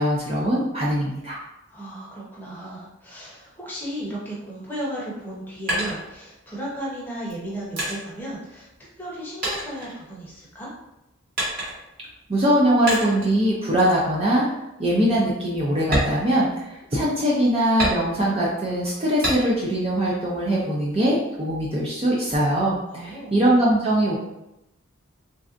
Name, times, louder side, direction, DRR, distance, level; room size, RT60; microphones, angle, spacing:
voice 1, 0.0-1.4 12.3-14.5 14.8-24.2, right 1 dB, 30° right, -5 dB, 0.4 m, -22 dB
voice 2, 1.7-8.7 9.0-10.7 22.9-23.4, right 1 dB, 10° left, -6 dB, 0.8 m, -35 dB
sound 1, 5.2-6.7 7.3-9.1 9.4-10.6 11.4-12.0 12.9-13.4 13.8-14.0 14.5-14.6 15.0-15.2 15.8-17.0 17.8-18.4 19.2-19.8 20.2-21.0, right 1 dB, 45° right, 1.3 m, -29 dB
3.3 x 2.6 x 2.4 m, 0.90 s
head